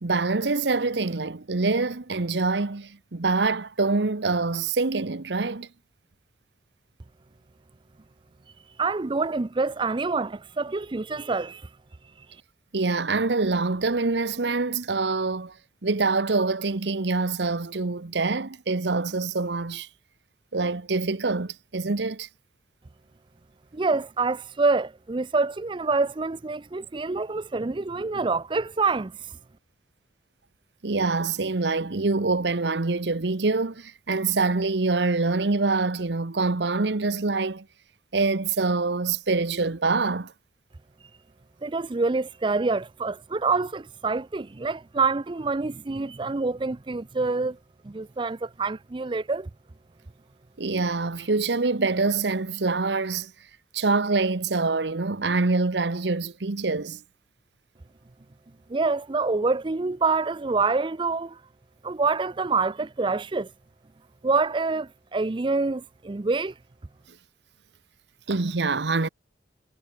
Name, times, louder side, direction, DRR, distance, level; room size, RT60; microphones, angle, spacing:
voice 1, 0.0-5.7 12.7-15.6 15.8-19.9 20.5-22.3 30.8-37.7 38.1-40.3 50.6-53.3 53.7-57.0 68.3-69.1, right 3 dB, 75° right, 1.0 m, -25 dB
voice 2, 8.8-11.7 23.7-29.1 41.6-47.6 47.8-49.5 58.7-61.4 61.8-63.5 64.2-66.5, right 3 dB, 25° right, 0.5 m, -26 dB
head